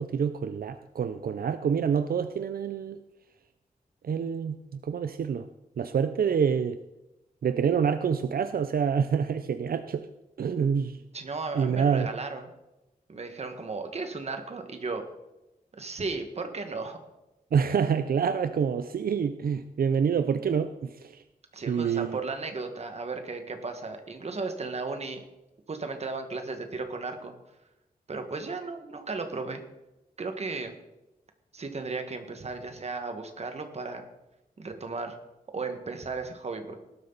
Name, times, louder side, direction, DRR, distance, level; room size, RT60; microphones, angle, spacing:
voice 1, 0.0-3.0 4.0-5.5 5.8-6.8 7.4-10.1 10.4-11.0 11.5-12.1 17.5-21.2 21.7-22.2, right 7 dB, 80° right, 10 dB, 0.6 m, -27 dB
voice 2, 11.1-12.5 13.1-15.0 15.8-17.0 21.5-25.2 25.7-27.3 28.1-29.6 30.2-30.7 31.5-34.0 34.6-35.2 35.5-36.8, right 3 dB, 45° right, 6 dB, 1.7 m, -35 dB
18.5 x 12.0 x 4.1 m, 0.97 s
wide cardioid pair, 175°, 15 cm